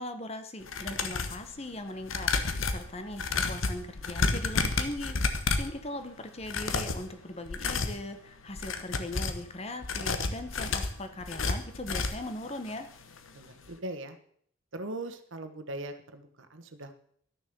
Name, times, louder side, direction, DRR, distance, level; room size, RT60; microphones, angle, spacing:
voice 1, 0.0-12.9, left 1 dB, 30° left, 8 dB, 1.1 m, -40 dB
sound 1, 0.6-1.4 2.0-5.8 6.4-7.1 7.5-8.0 8.5-9.4 9.8-12.3 12.7-12.8 13.1-13.2, left 4 dB, 80° left, 1.2 m, -30 dB
voice 2, 13.3-14.2 14.7-17.0, right 1 dB, 70° right, 8 dB, 1.3 m, -40 dB
12.5 x 6.9 x 6.8 m, 0.63 s
head